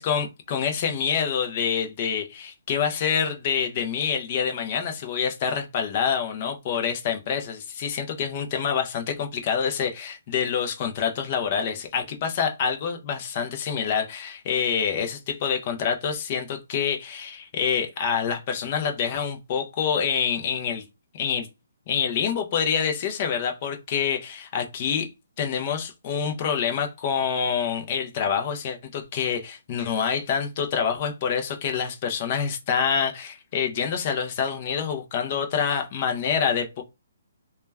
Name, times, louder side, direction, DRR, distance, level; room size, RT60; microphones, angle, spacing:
voice 1, 0.0-20.8 21.1-21.5 21.9-25.1 25.4-36.8, left 7 dB, 25° left, 0.4 m, -26 dB
2.1 x 2.1 x 3.3 m
hypercardioid pair, 180°, 0 cm